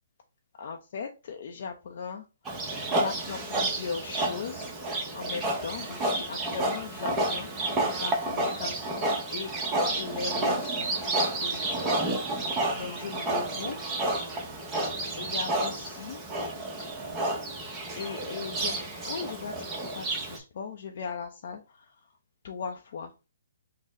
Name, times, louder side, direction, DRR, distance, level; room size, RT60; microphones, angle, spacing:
voice 1, 0.6-9.5 9.9-11.0 11.4-11.8 12.7-13.8 15.2-16.2 17.9-22.1 22.4-23.1, left 6 dB, 55° left, 2 dB, 0.5 m, -38 dB
Livestock farm animals working animals, 2.4-20.4, right 2 dB, 15° right, 0.8 m, -30 dB
4.0 x 2.0 x 3.7 m, 0.29 s
hypercardioid pair, 150°, 0 cm